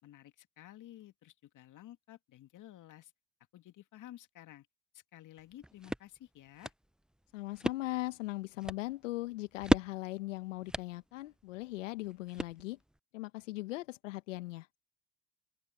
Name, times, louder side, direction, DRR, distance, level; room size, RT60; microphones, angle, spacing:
voice 1, 0.0-3.1 3.5-4.7 4.9-6.7, left 13 dB, 55° left, 2.3 m, -53 dB
sound 1, 5.4-13.0, right 1 dB, ahead, 0.6 m, -38 dB
voice 2, 7.3-12.8 13.1-14.8, left 19 dB, 85° left, 1.1 m, -39 dB
open air
hypercardioid pair, 65°, 37 cm